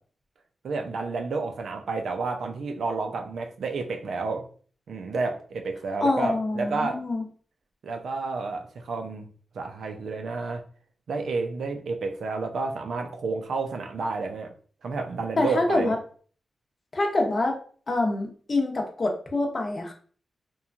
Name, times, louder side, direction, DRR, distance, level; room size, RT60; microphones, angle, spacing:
voice 1, 0.6-4.4 4.9-7.0 7.8-9.3 9.5-10.6 11.1-14.5 14.8-15.9, right 4 dB, 85° right, 4 dB, 0.4 m, -30 dB
voice 2, 6.0-7.2 15.4-16.0 16.9-17.6 17.9-19.9, left 2 dB, 45° left, 2 dB, 0.7 m, -25 dB
3.0 x 2.3 x 2.4 m, 0.44 s
cardioid pair, 75°, 0 cm